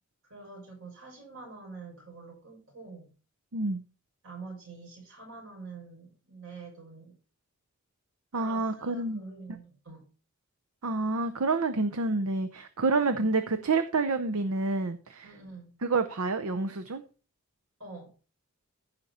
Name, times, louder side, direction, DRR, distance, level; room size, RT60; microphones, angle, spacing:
voice 1, 0.2-3.1 4.2-7.1 8.3-10.1 13.1-13.3 15.2-15.7 17.8-18.1, right 3 dB, 65° right, 6.1 m, -46 dB
voice 2, 3.5-3.8 8.3-9.2 10.8-15.3 15.8-17.0, right 3 dB, 85° right, 0.7 m, -28 dB
15.0 x 5.8 x 4.2 m
head